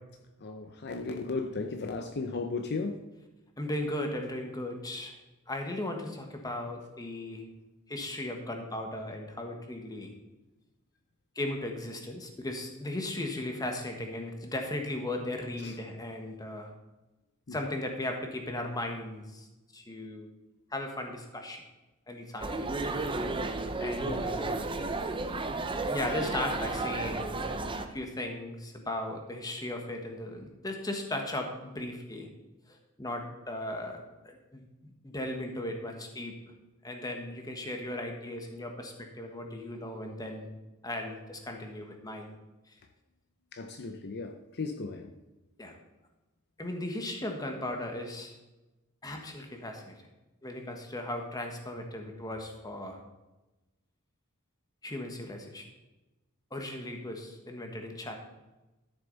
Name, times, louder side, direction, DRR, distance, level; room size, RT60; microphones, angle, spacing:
voice 1, 0.4-3.0 15.6-15.7 17.5-17.6 24.1-24.2 43.5-45.1, left 3 dB, 50° left, 0.7 m, -35 dB
voice 2, 3.6-5.2 5.5-7.5 7.9-10.1 11.3-16.7 17.5-20.3 20.7-21.6 22.1-22.6 23.8-24.6 25.9-27.5 27.9-32.3 32.7-36.3 36.8-40.5 40.8-42.3 42.7-42.8 45.6-45.7 46.6-48.4 49.0-50.0 50.4-53.0 54.8-55.7 56.5-58.2, left 1 dB, 20° left, 1.4 m, -37 dB
sound 1, 22.4-27.9, right 3 dB, 25° right, 0.7 m, -33 dB
12.5 x 7.2 x 4.0 m
head